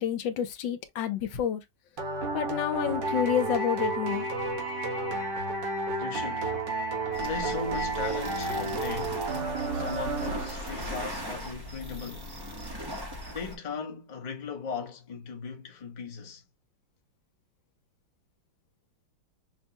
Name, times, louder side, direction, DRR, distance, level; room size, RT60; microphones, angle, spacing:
voice 1, 0.0-1.6 2.3-4.2, left 9 dB, 80° left, 1.4 m, -29 dB
sound 1, 2.0-10.9, right 2 dB, 70° right, 2.0 m, -31 dB
voice 2, 6.0-6.6 7.2-9.3 9.7-12.3 13.3-16.4, left 5 dB, 30° left, 0.8 m, -38 dB
sound 2, 7.1-13.6, equal, 20° right, 0.7 m, -39 dB
5.9 x 2.2 x 2.8 m
omnidirectional pair, 2.0 m